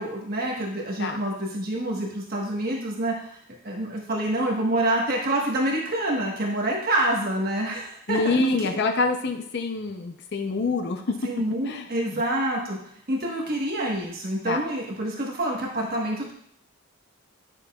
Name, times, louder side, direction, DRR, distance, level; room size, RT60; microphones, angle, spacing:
voice 1, 0.0-3.3 3.6-8.8 11.2-12.8 13.1-16.3, right 1 dB, 40° right, -1 dB, 1.3 m, -27 dB
voice 2, 8.1-11.1 11.6-12.2 14.4-14.6, left 3 dB, 50° left, 5 dB, 0.5 m, -26 dB
9.5 x 6.8 x 2.3 m, 0.68 s
head